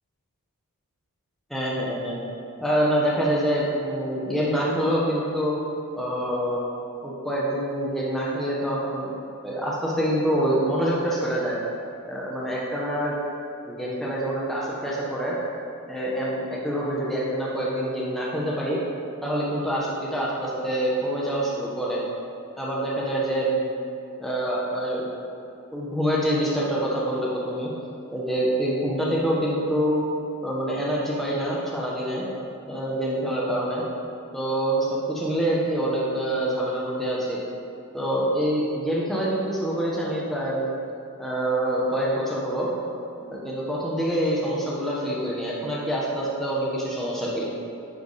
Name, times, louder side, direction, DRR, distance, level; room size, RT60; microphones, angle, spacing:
voice 1, 1.5-2.2 2.6-5.5 6.0-6.6 7.0-9.1 9.4-11.6 12.1-13.2 13.7-15.4 15.9-18.8 19.2-22.0 22.6-23.7 24.2-25.0 25.7-27.7 28.1-30.0 30.4-32.2 32.7-33.8 34.3-37.4 37.9-40.7 41.2-42.7 43.2-47.5, right 1 dB, ahead, -6 dB, 0.9 m, -26 dB
9.8 x 3.4 x 4.0 m, 2.6 s
head